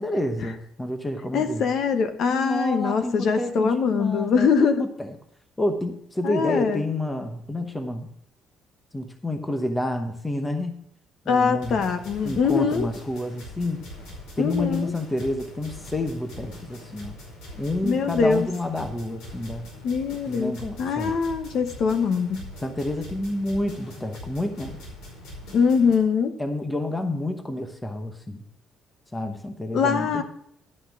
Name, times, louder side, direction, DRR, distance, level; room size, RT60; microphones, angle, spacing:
voice 1, 0.0-1.7 2.3-5.1 5.6-8.1 8.9-10.8 11.2-11.8 12.2-13.8 14.4-17.1 17.6-19.7 20.3-21.1 22.6-24.8 26.4-28.4 29.1-30.2, left 1 dB, 10° left, 6 dB, 0.9 m, -29 dB
voice 2, 1.3-4.8 6.2-6.8 11.3-12.9 14.4-14.9 17.8-18.5 19.8-20.5 20.8-22.5 25.5-26.3 29.7-30.2, left 6 dB, 50° left, 9 dB, 1.0 m, -23 dB
sound 1, 11.6-25.9, left 1 dB, 80° left, 4.7 m, -42 dB
11.5 x 5.8 x 5.9 m, 0.71 s
cardioid pair, 170°, 0 cm